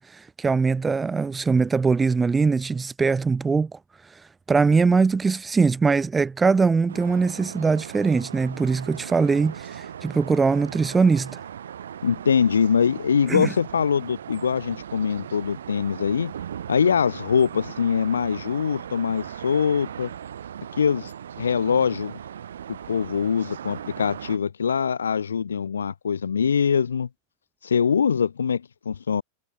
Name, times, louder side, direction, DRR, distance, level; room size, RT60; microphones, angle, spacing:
voice 1, 0.0-3.8 4.1-4.2 4.5-11.4 13.3-13.5, right 4 dB, 15° right, 0.6 m, -22 dB
sound 1, 6.9-24.4, right 9 dB, 65° right, 2.4 m, -38 dB
voice 2, 12.0-16.3 16.7-20.1 20.8-22.1 22.7-27.1 27.6-29.2, left 7 dB, 70° left, 0.3 m, -23 dB
figure-of-eight pair, 90°, 0 cm